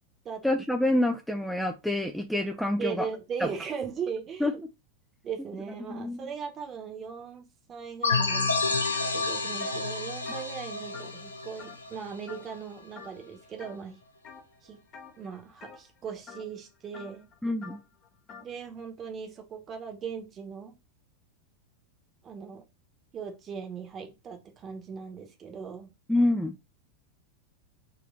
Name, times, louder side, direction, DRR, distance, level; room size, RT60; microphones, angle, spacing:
voice 1, 0.4-3.1 3.4-3.5 4.4-4.5 5.9-6.3 17.4-17.8 26.1-26.6, left 1 dB, ahead, 0.4 m, -27 dB
voice 2, 2.8-4.5 5.2-14.0 14.6-14.8 15.2-17.3 18.4-20.7 22.2-22.6 23.1-25.9, right 6 dB, 25° right, 1.0 m, -38 dB
sound 1, 8.0-12.5, left 3 dB, 75° left, 0.7 m, -29 dB
sound 2, 8.3-8.5 8.8-11.3 11.6-12.0 12.3-12.6 12.9-13.8 14.2-14.6 14.9-18.5, left 6 dB, 30° left, 0.9 m, -48 dB
4.1 x 2.7 x 3.8 m
figure-of-eight pair, 90°, 0 cm